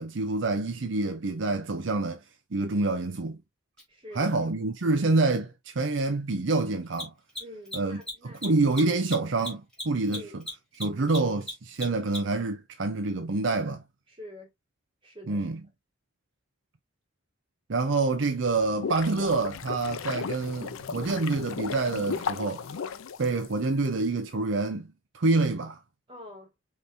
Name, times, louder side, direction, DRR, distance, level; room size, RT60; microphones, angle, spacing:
voice 1, 0.0-2.2 2.5-3.4 4.1-7.1 7.7-10.4 10.7-13.8 15.3-15.7 17.7-22.7 23.2-24.9 25.1-25.8, right 3 dB, 65° right, 0.6 m, -27 dB
Mechanisms, 3.8-3.9 6.8-12.4, left 1 dB, 5° left, 2.3 m, -37 dB
voice 2, 3.9-4.3 7.4-8.4 10.1-10.4 14.2-14.5 15.0-15.4 26.1-26.5, left 1 dB, 25° right, 1.8 m, -45 dB
sound 1, 18.4-23.9, left 6 dB, 85° left, 0.5 m, -35 dB
5.4 x 3.2 x 2.5 m
head